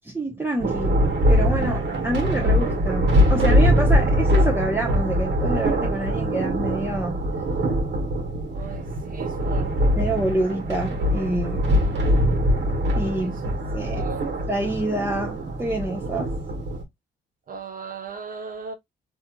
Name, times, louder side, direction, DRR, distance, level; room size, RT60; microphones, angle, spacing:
voice 1, 0.0-1.0 1.3-7.2 10.0-11.6 13.0-13.4 13.7-14.1 14.5-16.3, right 1 dB, 10° right, 0.7 m, -27 dB
Thunder, 0.6-16.8, equal, 65° right, 1.2 m, -22 dB
voice 2, 8.5-9.9 13.2-13.3 13.6-14.3 17.5-18.8, right 6 dB, 45° right, 0.6 m, -38 dB
3.2 x 2.7 x 2.3 m
cardioid pair, 90°, 20 cm